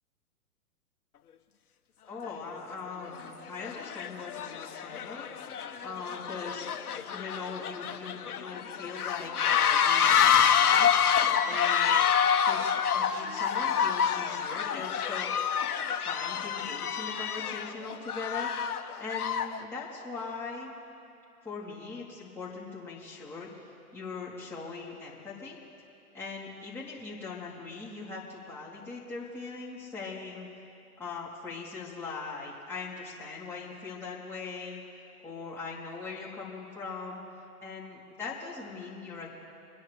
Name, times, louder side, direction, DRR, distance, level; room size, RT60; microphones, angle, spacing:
voice 1, 2.1-5.3 5.8-6.6 7.1-11.9 12.4-15.3 16.0-20.7 21.4-25.6 26.1-30.5 31.0-34.8 35.2-37.2 37.6-39.3, left 4 dB, 5° left, -9 dB, 3.2 m, -40 dB
sound 1, 2.2-2.3 3.0-3.3 3.6-19.6, left 8 dB, 70° left, 1.2 m, -27 dB
25.0 x 10.5 x 3.4 m, 2.6 s
hypercardioid pair, 125°, 46 cm